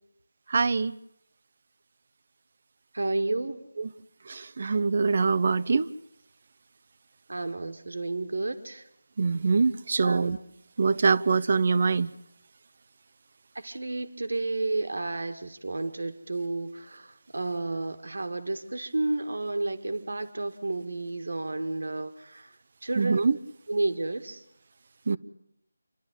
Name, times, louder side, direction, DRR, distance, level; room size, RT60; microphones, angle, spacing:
voice 1, 0.5-0.9 3.8-3.9 4.3-5.9 9.2-10.4 10.8-12.1 23.0-23.4 25.1-25.2, right 4 dB, 45° right, 0.7 m, -24 dB
voice 2, 2.9-3.6 7.3-8.8 10.0-10.2 13.6-22.5 22.8-23.2 23.7-24.4, right 2 dB, 75° right, 2.0 m, -31 dB
28.5 x 11.5 x 9.8 m
figure-of-eight pair, 170°, 0 cm